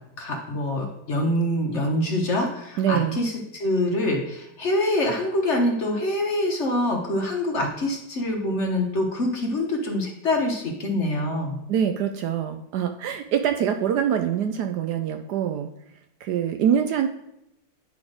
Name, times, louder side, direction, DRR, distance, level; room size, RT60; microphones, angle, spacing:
voice 1, 0.2-11.6, left 1 dB, 45° left, 1 dB, 1.2 m, -25 dB
voice 2, 2.8-3.2 11.7-15.7 16.2-17.1, right 9 dB, 70° right, 7 dB, 1.0 m, -24 dB
9.6 x 4.2 x 4.9 m, 0.83 s
omnidirectional pair, 2.0 m